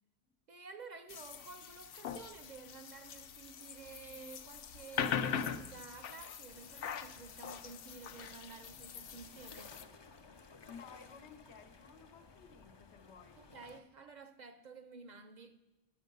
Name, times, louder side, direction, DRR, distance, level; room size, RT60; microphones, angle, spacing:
voice 1, 0.5-9.8 13.4-15.6, right 5 dB, 55° right, 0.6 m, -52 dB
sound 1, 1.1-9.8, left 8 dB, 65° left, 0.7 m, -42 dB
sound 2, 6.5-13.8, left 4 dB, 45° left, 0.3 m, -58 dB
voice 2, 10.7-13.4, left 6 dB, 90° left, 1.1 m, -55 dB
12.0 x 7.4 x 5.3 m
omnidirectional pair, 1.1 m